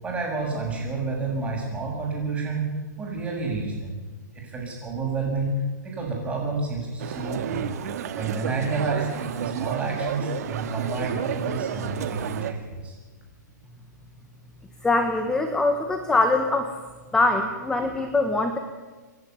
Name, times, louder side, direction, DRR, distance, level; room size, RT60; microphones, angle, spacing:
voice 1, 0.0-2.7 3.0-4.0 4.4-5.5 5.8-7.6 8.2-13.0, right 4 dB, 10° right, -1 dB, 7.4 m, -29 dB
sound 1, 7.0-12.5, right 9 dB, 55° right, 2.1 m, -31 dB
voice 2, 14.8-16.7 17.1-18.6, left 2 dB, 5° left, 6 dB, 1.5 m, -23 dB
28.5 x 11.0 x 9.6 m, 1.3 s
hypercardioid pair, 145°, 10 cm